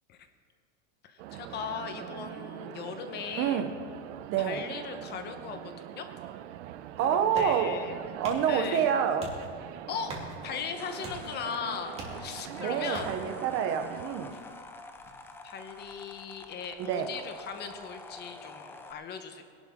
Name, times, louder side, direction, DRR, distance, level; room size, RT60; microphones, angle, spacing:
voice 1, 1.0-3.6 4.4-6.1 7.0-8.0 8.5-8.9 9.9-10.2 10.4-13.1 15.4-19.4, left 6 dB, 30° left, 7 dB, 1.0 m, -38 dB
sound 1, 1.2-14.0, right 12 dB, 75° right, 0.7 m, -43 dB
voice 2, 3.4-3.7 4.3-4.6 7.0-7.8 8.2-9.3 12.6-14.4 16.8-17.1, right 8 dB, 40° right, 8 dB, 0.8 m, -27 dB
sound 2, 6.6-18.1, right 2 dB, 15° right, 2.4 m, -47 dB
sound 3, 9.9-18.9, left 3 dB, 5° left, 0.5 m, -47 dB
20.5 x 11.5 x 3.6 m, 2.2 s
supercardioid pair, 160°, 35 cm